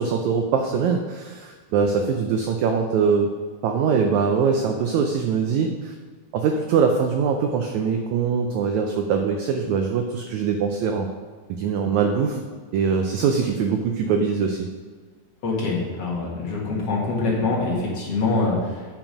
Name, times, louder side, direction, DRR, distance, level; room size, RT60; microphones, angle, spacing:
voice 1, 0.0-3.3 3.6-5.9 6.3-11.1 11.6-12.4 12.7-14.7, right 6 dB, 85° right, 4 dB, 1.6 m, -22 dB
voice 2, 15.4-18.9, left 3 dB, 50° left, -4 dB, 2.3 m, -24 dB
9.0 x 5.9 x 5.2 m, 1.5 s
omnidirectional pair, 4.0 m